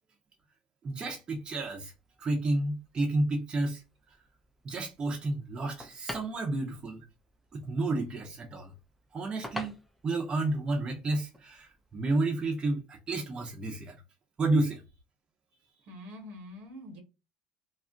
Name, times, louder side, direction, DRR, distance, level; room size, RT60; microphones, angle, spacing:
voice 1, 0.8-1.9 2.2-3.8 4.6-7.0 7.5-8.7 9.1-9.8 10.0-14.0 14.4-14.8, right 2 dB, 35° right, 0.7 m, -31 dB
sound 1, 1.3-12.2, equal, ahead, 0.5 m, -49 dB
voice 2, 15.9-17.0, left 1 dB, 70° right, 1.2 m, -45 dB
2.5 x 2.0 x 3.5 m
supercardioid pair, 95°, 3 cm